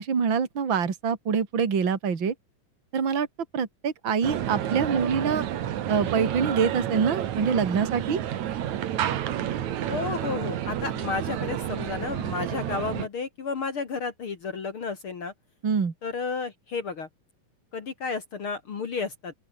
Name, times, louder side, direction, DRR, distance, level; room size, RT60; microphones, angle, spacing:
voice 1, 0.0-2.3 2.9-3.3 3.5-5.5 5.9-8.2 15.6-15.9, right 6 dB, 35° right, 3.2 m, -25 dB
sound 1, 4.2-13.1, right 11 dB, 65° right, 2.7 m, -30 dB
voice 2, 9.9-15.3 16.0-17.1 17.7-19.3, left 4 dB, 45° left, 2.3 m, -32 dB
open air
omnidirectional pair, 3.9 m